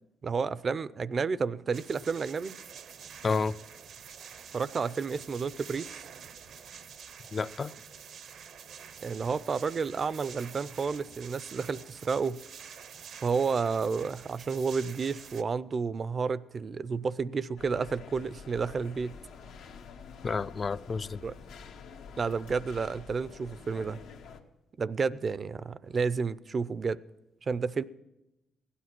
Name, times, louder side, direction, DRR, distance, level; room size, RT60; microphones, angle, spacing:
voice 1, 0.2-2.6 4.5-5.9 9.0-12.4 13.2-19.1 21.2-21.3 22.2-24.0 24.8-27.0 27.4-27.8, right 5 dB, 40° right, 0.5 m, -31 dB
sound 1, 1.7-15.4, right 7 dB, 70° right, 0.7 m, -48 dB
voice 2, 3.2-3.5 7.3-7.7 20.2-21.2, left 4 dB, 35° left, 0.4 m, -30 dB
sound 2, 17.6-24.4, left 5 dB, 90° left, 1.2 m, -48 dB
16.0 x 10.0 x 6.0 m
cardioid pair, 90°, 0 cm